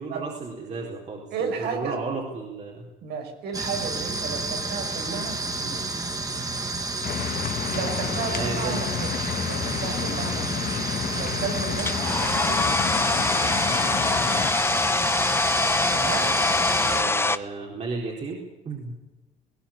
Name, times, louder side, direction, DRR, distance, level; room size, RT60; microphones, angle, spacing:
voice 1, 0.0-2.9 8.2-8.8 16.8-18.9, right 3 dB, 45° right, -1 dB, 4.2 m, -33 dB
voice 2, 1.3-2.0 3.0-5.8 7.7-10.8 11.1-12.8 15.9-16.4, right 5 dB, 75° right, 4 dB, 5.6 m, -33 dB
sound 1, 3.5-17.0, right 3 dB, 20° right, 2.4 m, -30 dB
sound 2, 7.0-14.5, left 8 dB, 55° left, 2.1 m, -31 dB
Domestic sounds home sounds, 11.8-17.4, left 3 dB, 15° left, 1.0 m, -24 dB
20.5 x 16.5 x 8.7 m, 1.1 s
cardioid pair, 110°, 17 cm